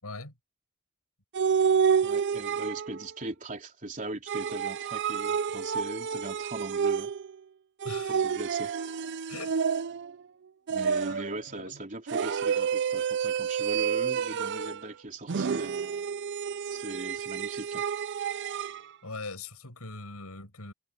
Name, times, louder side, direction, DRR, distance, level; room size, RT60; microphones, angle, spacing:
voice 1, 0.0-0.3 7.8-8.2 9.3-9.6 11.6-11.8 19.0-20.7, left 3 dB, 80° left, 6.1 m, -41 dB
sound 1, 1.3-3.1 4.3-7.3 7.8-10.2 10.7-11.4 12.1-14.9 15.3-18.8, right 7 dB, 50° right, 0.5 m, -29 dB
voice 2, 2.0-7.1 8.1-8.7 10.7-15.7 16.7-17.8, right 2 dB, 35° right, 3.5 m, -39 dB
head